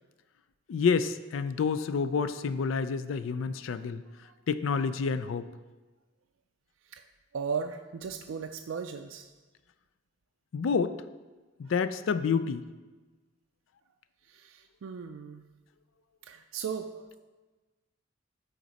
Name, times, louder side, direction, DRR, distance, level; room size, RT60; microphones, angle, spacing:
voice 1, 0.7-4.0 4.5-5.5 10.5-10.9 11.6-12.6, left 5 dB, 75° left, 13 dB, 0.4 m, -28 dB
voice 2, 7.3-9.3 14.3-15.4 16.2-17.2, right 6 dB, 80° right, 5 dB, 0.4 m, -37 dB
12.5 x 4.2 x 4.0 m, 1.2 s
head